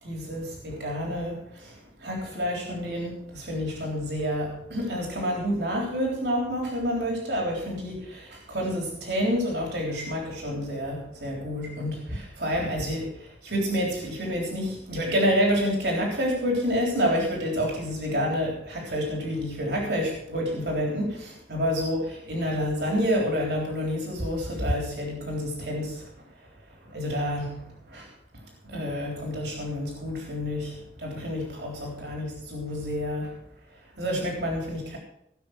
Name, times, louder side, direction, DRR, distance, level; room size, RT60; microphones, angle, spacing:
voice 1, 0.0-26.1 26.8-33.4 34.0-35.0, equal, 70° right, -1 dB, 3.6 m, -29 dB
18.0 x 6.2 x 6.5 m, 0.75 s
head